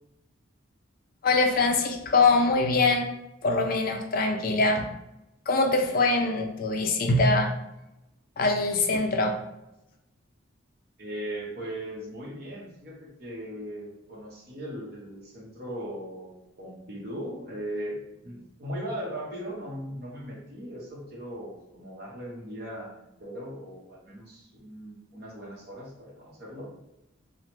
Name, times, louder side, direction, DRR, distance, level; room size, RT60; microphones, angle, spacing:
voice 1, 1.2-3.1 3.4-4.9 5.5-7.5 8.4-9.4, left 3 dB, 40° left, 4 dB, 0.3 m, -23 dB
voice 2, 11.0-18.0 18.2-26.7, equal, 45° right, -3 dB, 0.8 m, -38 dB
3.0 x 2.1 x 2.9 m, 0.91 s
head